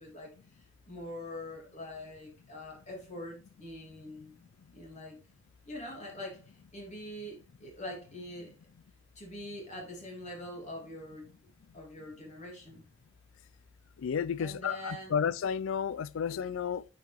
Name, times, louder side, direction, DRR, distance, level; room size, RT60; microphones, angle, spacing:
voice 1, 0.0-4.4 4.7-5.2 5.7-8.5 9.1-11.3 11.7-12.8 14.4-15.2, left 1 dB, 35° left, 2.9 m, -44 dB
voice 2, 14.0-16.9, left 7 dB, 70° left, 0.4 m, -32 dB
8.6 x 5.4 x 3.4 m
head